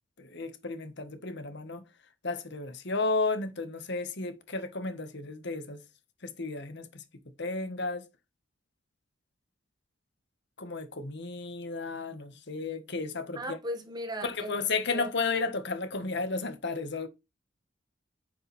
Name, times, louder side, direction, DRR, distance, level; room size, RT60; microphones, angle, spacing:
voice 1, 0.2-1.8 2.2-5.8 6.2-7.0 7.4-8.0 10.6-13.6 14.2-17.1, left 3 dB, 65° left, 1.6 m, -33 dB
voice 2, 13.3-15.1, right 1 dB, 20° right, 1.7 m, -37 dB
9.8 x 5.6 x 3.4 m
head